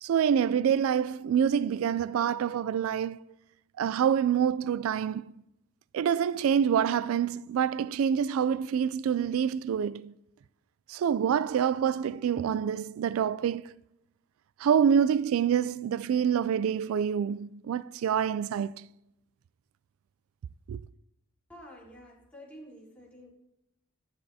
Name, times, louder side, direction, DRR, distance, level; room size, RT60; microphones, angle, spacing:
voice 1, 0.0-3.2 3.8-5.3 5.9-10.1 10.9-13.8 14.6-18.9 20.7-20.8, right 8 dB, 85° right, 0.3 m, -26 dB
voice 2, 21.5-23.3, equal, 5° left, 3.8 m, -49 dB
25.0 x 8.8 x 2.8 m
head